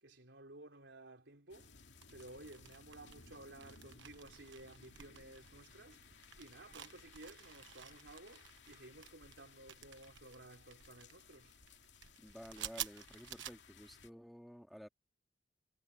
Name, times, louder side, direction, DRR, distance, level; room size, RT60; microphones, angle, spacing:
voice 1, 0.0-1.7 2.1-6.0 6.4-11.5, right 2 dB, 70° right, 4.1 m, -55 dB
sound 1, 1.5-14.1, left 5 dB, 70° left, 2.7 m, -61 dB
sound 2, 2.0-13.5, right 11 dB, 90° right, 1.2 m, -52 dB
voice 2, 12.2-14.9, equal, ahead, 2.1 m, -53 dB
head